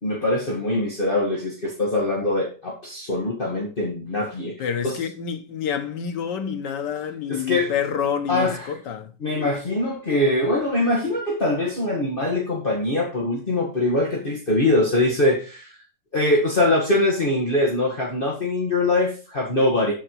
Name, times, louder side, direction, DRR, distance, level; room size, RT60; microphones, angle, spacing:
voice 1, 0.0-5.0 7.3-7.7 8.3-8.8 9.2-15.8 16.1-19.9, left 1 dB, 30° left, 2.0 m, -23 dB
voice 2, 4.6-9.1, left 8 dB, 85° left, 1.8 m, -28 dB
12.5 x 5.0 x 4.7 m
omnidirectional pair, 1.8 m